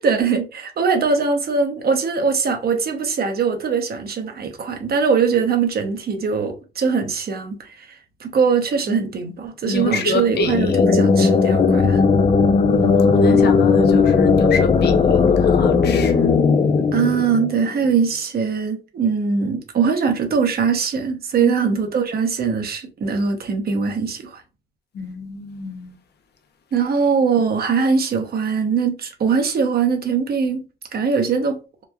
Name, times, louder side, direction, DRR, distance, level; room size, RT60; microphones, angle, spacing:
voice 1, 0.0-12.0 16.9-24.4 26.7-30.7 30.9-31.6, right 5 dB, 50° right, 0.7 m, -21 dB
voice 2, 9.7-10.5 12.7-16.2 21.4-21.5 24.9-26.0, left 4 dB, 55° left, 0.7 m, -26 dB
sound 1, 10.3-17.9, left 5 dB, 30° left, 0.4 m, -17 dB
2.9 x 2.3 x 2.2 m
cardioid pair, 90°, 20 cm